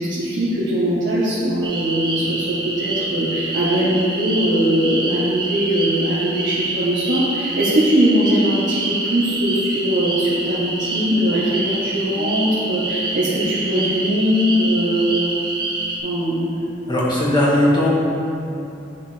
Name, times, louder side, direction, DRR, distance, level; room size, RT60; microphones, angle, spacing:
voice 1, 0.0-15.3 16.0-16.5, equal, 85° right, -10 dB, 1.4 m, -20 dB
sound 1, 1.6-16.0, right 2 dB, 25° right, 0.9 m, -26 dB
voice 2, 16.9-17.9, left 1 dB, 25° left, -5 dB, 1.5 m, -17 dB
10.5 x 4.8 x 3.5 m, 2.8 s
head